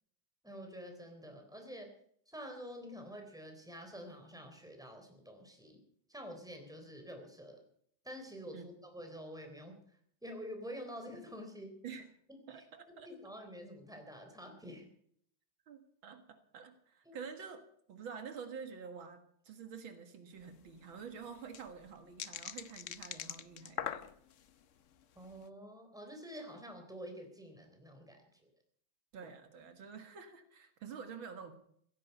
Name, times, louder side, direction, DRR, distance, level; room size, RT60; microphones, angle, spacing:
voice 1, 0.4-1.9 2.3-5.8 6.1-7.6 8.0-11.8 12.5-12.6 13.0-14.9 17.1-17.2 25.2-28.5, equal, ahead, 4 dB, 3.6 m, -48 dB
voice 2, 12.5-13.1 15.7-17.6 17.9-24.1 29.1-31.5, right 6 dB, 80° right, 7 dB, 2.5 m, -48 dB
sound 1, 20.4-20.5 20.7-20.8 21.2-24.5 25.0-25.3, left 9 dB, 60° left, 0.8 m, -42 dB
16.0 x 14.5 x 5.5 m, 0.66 s
omnidirectional pair, 2.1 m